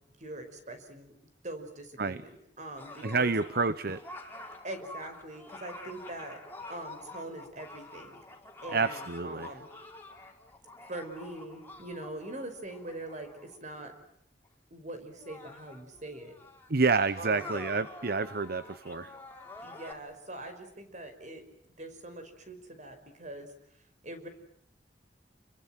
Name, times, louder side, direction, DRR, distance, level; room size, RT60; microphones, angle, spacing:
voice 1, 0.2-1.1 1.4-3.3 4.6-6.4 6.7-8.2 8.6-9.7 10.9-13.9 14.7-16.3 17.2-17.6 19.6-21.4 21.8-23.5 24.0-24.3, right 1 dB, 45° right, 8 dB, 5.6 m, -42 dB
sound 1, 2.8-13.6 14.4-14.5 15.1-19.9, left 2 dB, 10° left, 4.3 m, -47 dB
voice 2, 3.0-4.0 8.7-9.5 16.7-19.2, right 4 dB, 60° right, 14 dB, 1.0 m, -29 dB
30.0 x 23.0 x 7.6 m, 0.73 s
head